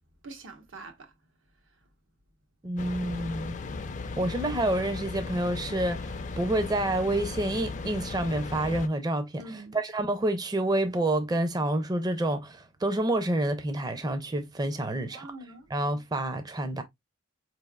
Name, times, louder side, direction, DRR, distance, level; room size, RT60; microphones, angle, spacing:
voice 1, 0.2-1.1 9.4-9.8 14.9-15.7, right 2 dB, 90° right, 1.1 m, -45 dB
voice 2, 2.6-3.6 4.2-15.3 15.7-16.8, right 1 dB, 20° right, 0.5 m, -28 dB
sound 1, 2.8-8.9, left 3 dB, 40° left, 0.4 m, -36 dB
4.7 x 3.3 x 2.3 m
head